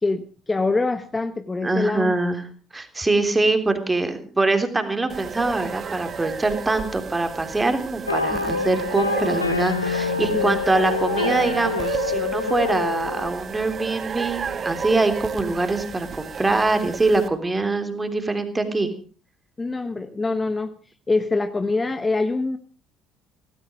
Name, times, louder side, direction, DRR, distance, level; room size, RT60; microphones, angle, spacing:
voice 1, 0.0-2.1 8.3-8.7 10.3-10.6 19.6-20.7 21.1-22.6, left 3 dB, 20° left, 10 dB, 1.3 m, -25 dB
voice 2, 1.6-2.4 2.7-18.9, right 2 dB, 15° right, 8 dB, 3.4 m, -23 dB
sound 1, 5.1-17.3, right 6 dB, 35° right, 1.9 m, -32 dB
sound 2, 8.1-13.3, left 4 dB, 85° left, 0.8 m, -26 dB
17.5 x 16.0 x 5.0 m, 0.38 s
figure-of-eight pair, 55°, 0 cm